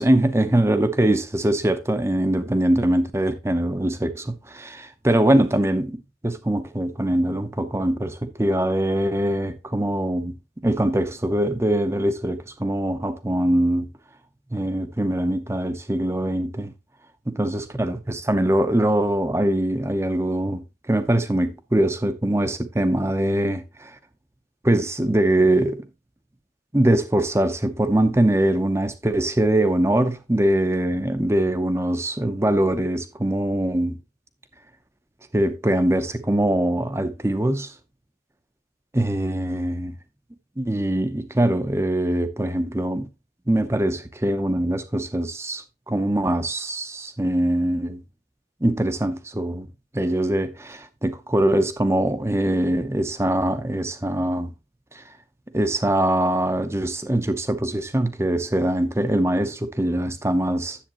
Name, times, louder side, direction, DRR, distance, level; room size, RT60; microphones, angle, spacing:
voice 1, 0.0-13.9 14.5-16.7 17.3-24.0 24.6-25.9 26.7-34.0 35.3-37.7 38.9-40.0 40.6-43.1 43.5-48.0 48.6-49.7 49.9-54.5 54.9-55.0 55.5-60.8, right 1 dB, 15° right, 0.7 m, -22 dB
10.0 x 7.7 x 3.0 m
head